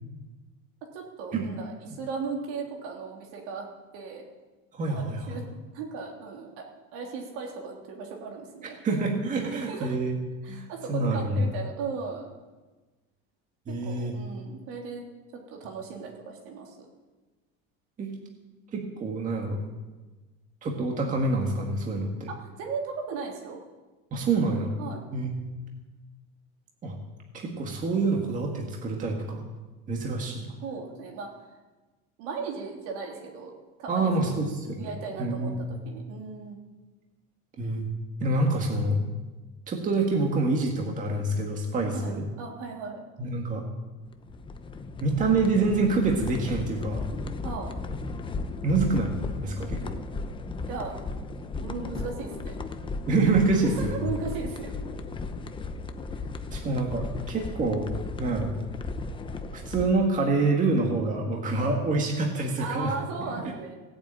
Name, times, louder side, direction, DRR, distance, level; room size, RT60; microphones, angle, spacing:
voice 1, 0.9-3.7 3.9-4.2 4.9-5.4 5.7-6.6 6.9-8.8 9.4-10.0 10.4-12.3 13.7-15.0 15.5-16.8 22.3-23.6 24.8-25.0 30.6-31.3 32.2-33.5 33.8-34.3 34.8-36.6 41.9-43.0 47.4-47.7 50.7-51.0 51.4-52.5 53.6-54.7 56.1-56.2 61.6-61.7 62.6-63.8, right 5 dB, 80° right, 0 dB, 3.2 m, -37 dB
voice 2, 4.7-5.3 8.8-10.2 10.5-11.4 13.7-14.2 18.0-18.1 18.7-19.6 20.6-22.3 24.1-24.7 25.1-25.3 26.8-27.0 27.3-29.4 29.9-30.5 33.9-34.9 35.2-35.7 37.6-37.9 38.2-39.0 39.7-42.2 43.2-43.6 45.0-47.1 48.6-49.1 49.4-50.0 53.1-54.0 56.5-57.9 58.2-58.5 59.5-63.0, right 3 dB, 25° right, 1 dB, 1.8 m, -26 dB
sound 1, 44.1-59.9, left 3 dB, 15° left, 0.8 m, -35 dB
17.0 x 8.7 x 8.9 m, 1.2 s
cardioid pair, 160°, 31 cm